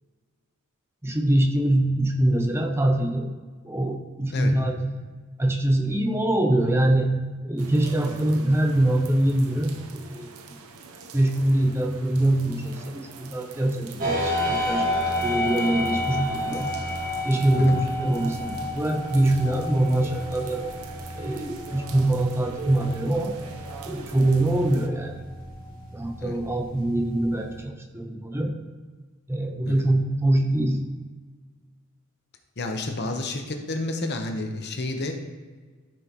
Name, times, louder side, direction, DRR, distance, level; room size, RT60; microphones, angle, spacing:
voice 1, 1.0-3.3 3.6-5.1 5.4-10.6 11.1-14.9 15.2-16.7 17.2-20.6 21.2-23.4 23.9-25.3 25.9-28.7 29.3-31.0, right 1 dB, 10° right, 4 dB, 0.5 m, -24 dB
sound 1, 7.6-24.9, right 4 dB, 85° right, 0.8 m, -44 dB
sound 2, 14.0-27.6, left 1 dB, 40° right, 1.9 m, -31 dB
voice 2, 32.6-35.1, left 2 dB, 50° left, 5 dB, 1.0 m, -30 dB
13.0 x 6.2 x 3.0 m, 1.4 s
head